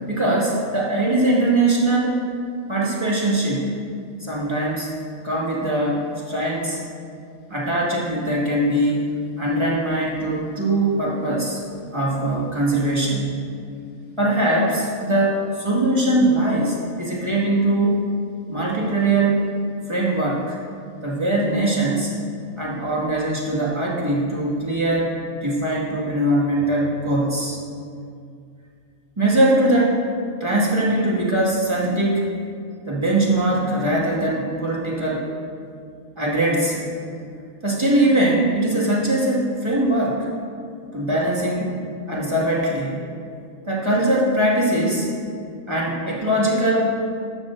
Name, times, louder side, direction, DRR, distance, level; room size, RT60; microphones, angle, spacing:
voice 1, 0.1-2.3 2.7-3.8 4.2-4.9 5.2-6.8 7.5-9.1 9.4-11.6 11.9-13.4 14.2-18.0 18.5-19.4 19.9-20.6 21.0-22.1 22.6-25.1 25.4-27.6 29.2-30.0 30.4-32.3 32.8-35.3 36.2-36.9 37.6-40.3 40.9-41.8 42.1-43.1 43.6-45.1 45.7-47.0, right 1 dB, 20° right, -5 dB, 2.1 m, -21 dB
13.5 x 12.0 x 2.6 m, 2.3 s
omnidirectional pair, 1.3 m